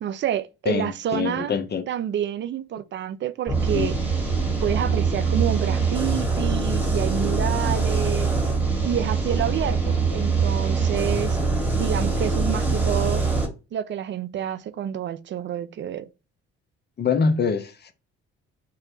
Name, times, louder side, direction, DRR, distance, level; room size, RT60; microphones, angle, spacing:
voice 1, 0.0-1.5 1.9-4.0 4.6-8.3 8.8-11.4 11.8-13.2 13.7-16.1, right 10 dB, 35° right, 0.4 m, -28 dB
voice 2, 0.7-1.8 3.7-3.9 17.0-17.9, left 5 dB, 30° left, 0.6 m, -24 dB
sound 1, 3.5-13.5, right 4 dB, 5° right, 1.2 m, -23 dB
2.7 x 2.1 x 2.6 m
hypercardioid pair, 50°, 33 cm